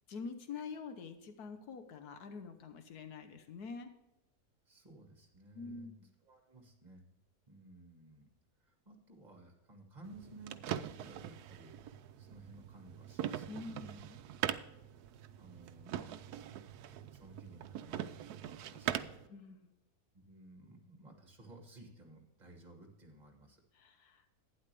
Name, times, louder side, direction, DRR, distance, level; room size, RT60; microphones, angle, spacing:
voice 1, 0.1-3.9 5.5-5.9 13.5-14.2 19.3-19.7 23.7-24.2, left 5 dB, 85° left, 8 dB, 1.5 m, -46 dB
voice 2, 4.7-5.9 6.2-7.1 7.5-8.3 8.6-11.8 12.2-13.8 15.1-16.1 16.9-19.2 20.3-23.6, right 2 dB, 30° right, 2 dB, 2.2 m, -56 dB
sound 1, 10.0-19.3, right 11 dB, 85° right, 1.1 m, -42 dB
12.0 x 9.7 x 3.4 m, 0.95 s
omnidirectional pair, 1.6 m